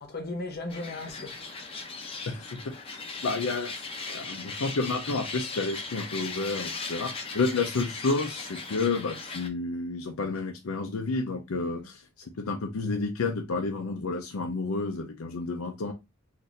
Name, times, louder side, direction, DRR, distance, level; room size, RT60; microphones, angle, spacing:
voice 1, 0.0-2.3 11.8-11.9, left 2 dB, 45° left, 0.9 m, -38 dB
sound 1, 0.7-9.5, left 4 dB, 25° left, 0.6 m, -38 dB
voice 2, 2.3-12.0 12.4-15.9, left 3 dB, 80° left, 0.6 m, -30 dB
3.9 x 2.6 x 2.5 m
head